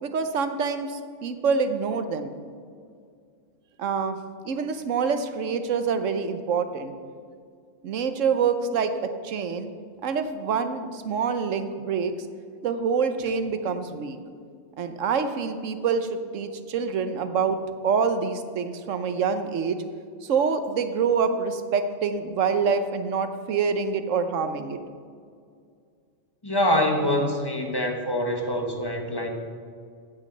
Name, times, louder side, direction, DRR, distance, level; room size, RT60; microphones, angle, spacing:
voice 1, 0.0-2.4 3.8-4.2 4.4-6.9 7.8-8.9 9.2-9.7 10.0-12.1 12.6-14.2 14.8-17.6 17.8-19.8 20.2-24.8, right 5 dB, 70° right, 9 dB, 1.2 m, -26 dB
voice 2, 26.4-29.3, left 1 dB, 20° left, 3 dB, 1.2 m, -25 dB
16.0 x 6.2 x 6.6 m, 2.2 s
omnidirectional pair, 1.4 m